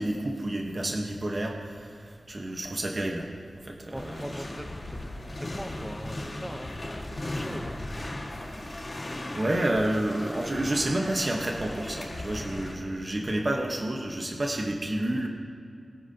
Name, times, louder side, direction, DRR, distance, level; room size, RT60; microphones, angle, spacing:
voice 1, 0.0-3.3 3.6-4.4 8.6-15.3, right 1 dB, 35° right, 1 dB, 1.1 m, -30 dB
sound 1, 3.9-12.7, left 1 dB, 40° left, 1.7 m, -37 dB
voice 2, 3.9-7.8, equal, 5° right, 6 dB, 0.8 m, -41 dB
22.0 x 10.5 x 2.8 m, 2.5 s
wide cardioid pair, 120°, 0 cm